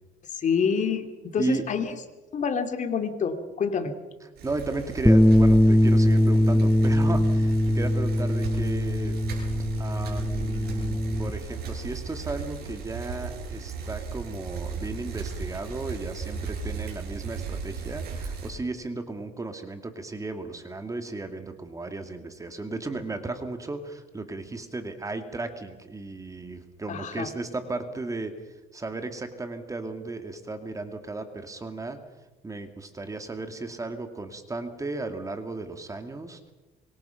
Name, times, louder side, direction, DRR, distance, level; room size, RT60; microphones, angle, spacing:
voice 1, 0.3-1.0 1.3-1.8 2.3-3.9 26.9-27.3, left 6 dB, 45° left, 7 dB, 2.7 m, -27 dB
voice 2, 4.4-9.2 9.8-28.3 28.7-32.0 32.4-36.5, right 3 dB, 20° right, 7 dB, 2.5 m, -35 dB
Bicycle, 4.4-18.5, right 4 dB, 65° right, 7.9 m, -36 dB
Bass guitar, 5.1-11.3, left 1 dB, ahead, 0.8 m, -21 dB
25.5 x 23.0 x 5.9 m, 1.2 s
cardioid pair, 110°, 17 cm